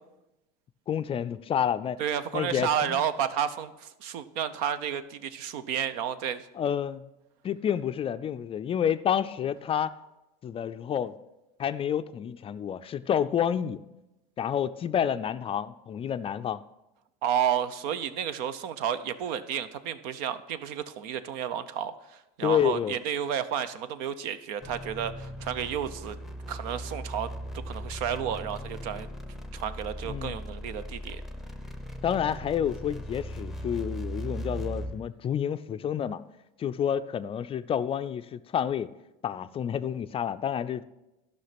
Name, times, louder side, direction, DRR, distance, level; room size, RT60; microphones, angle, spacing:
voice 1, 0.9-2.0 2.3-3.0 6.6-7.0 7.4-9.9 10.4-11.1 11.6-13.8 14.4-16.6 22.4-22.9 30.0-30.4 32.0-36.2 36.6-38.9 39.2-40.8, left 9 dB, 30° left, 12 dB, 0.4 m, -29 dB
voice 2, 2.0-6.5 17.2-26.2 26.5-27.3 27.7-29.1 29.5-31.2, right 9 dB, 70° right, 13 dB, 0.8 m, -31 dB
sound 1, 24.6-35.1, equal, ahead, 0.7 m, -38 dB
12.0 x 5.7 x 5.9 m, 0.96 s
supercardioid pair, 110°, 20 cm